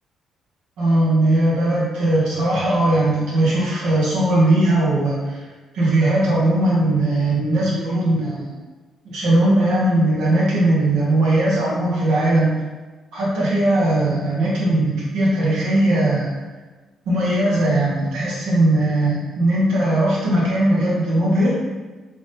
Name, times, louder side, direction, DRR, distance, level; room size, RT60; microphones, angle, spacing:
voice 1, 0.8-5.4 5.7-8.5 9.0-12.6 13.1-16.3 17.0-21.6, right 1 dB, 90° right, -7 dB, 1.5 m, -19 dB
3.6 x 2.7 x 3.6 m, 1.3 s
cardioid pair, 90°, 0 cm